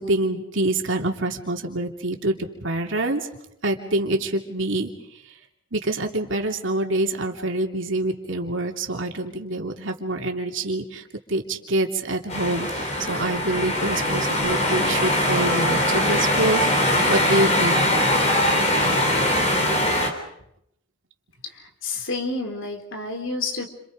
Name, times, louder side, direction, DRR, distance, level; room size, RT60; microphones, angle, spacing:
voice 1, 0.0-3.3 3.6-4.9 5.7-16.7 17.1-18.0, right 2 dB, 65° right, 3 dB, 2.9 m, -26 dB
sound 1, 12.3-20.1, left 1 dB, 30° left, 3.6 m, -21 dB
voice 2, 21.8-23.7, left 3 dB, 65° left, 4 dB, 4.0 m, -29 dB
30.0 x 27.0 x 5.2 m, 0.77 s
head